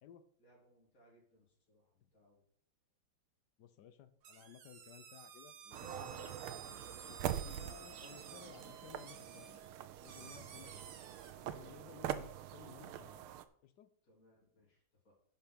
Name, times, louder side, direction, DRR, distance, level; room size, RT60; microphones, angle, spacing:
voice 1, 0.4-2.4 14.0-15.1, equal, 40° left, -5 dB, 3.8 m, -69 dB
voice 2, 3.6-6.4 7.1-9.6 10.0-10.8 11.4-13.3 13.6-13.9, left 9 dB, 65° left, 12 dB, 1.2 m, -57 dB
sound 1, 4.2-11.3, right 7 dB, 65° right, 1.8 m, -54 dB
sound 2, 5.7-13.4, right 11 dB, 80° right, 1.6 m, -44 dB
10.5 x 6.0 x 5.7 m, 0.63 s
omnidirectional pair, 2.3 m